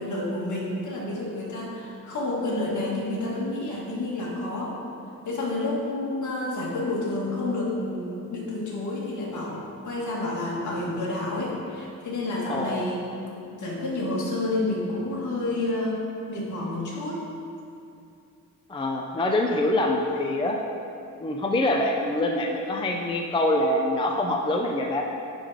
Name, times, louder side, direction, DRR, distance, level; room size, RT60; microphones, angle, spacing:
voice 1, 0.0-4.8 5.3-13.0 13.4-16.0 16.3-17.2, left 2 dB, 55° left, -4 dB, 1.9 m, -29 dB
voice 2, 12.5-12.9 18.7-20.6 21.2-25.0, left 1 dB, 15° left, 1 dB, 0.4 m, -25 dB
10.0 x 3.8 x 4.9 m, 2.6 s
cardioid pair, 135°, 35 cm